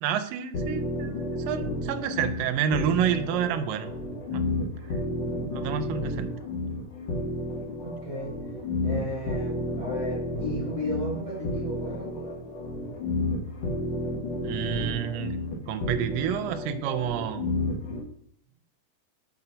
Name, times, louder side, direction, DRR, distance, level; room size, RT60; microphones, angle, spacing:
voice 1, 0.0-3.9 4.3-4.4 5.2-6.3 14.4-15.4 15.7-17.5, right 9 dB, 80° right, 10 dB, 2.2 m, -29 dB
sound 1, 0.5-18.0, left 1 dB, 90° left, 0.9 m, -31 dB
voice 2, 7.8-8.3 8.8-12.3, equal, 15° left, -4 dB, 1.6 m, -34 dB
6.7 x 5.9 x 3.8 m, 0.68 s
omnidirectional pair, 4.2 m